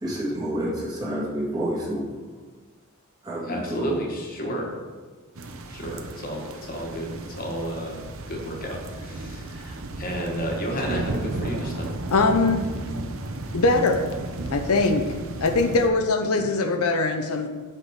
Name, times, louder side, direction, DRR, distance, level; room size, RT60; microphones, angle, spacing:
voice 1, 0.0-2.3 3.2-4.0 5.8-5.9, right 1 dB, 20° right, -6 dB, 2.0 m, -29 dB
voice 2, 3.4-4.8 5.7-11.9 16.3-16.4, equal, 40° left, 0 dB, 1.4 m, -32 dB
sound 1, 5.3-15.9, right 2 dB, 65° right, 0.7 m, -34 dB
voice 3, 12.1-12.6 13.5-14.1 14.5-15.0 15.4-17.5, left 3 dB, 85° left, 5 dB, 0.7 m, -21 dB
7.7 x 6.0 x 4.7 m, 1.4 s
head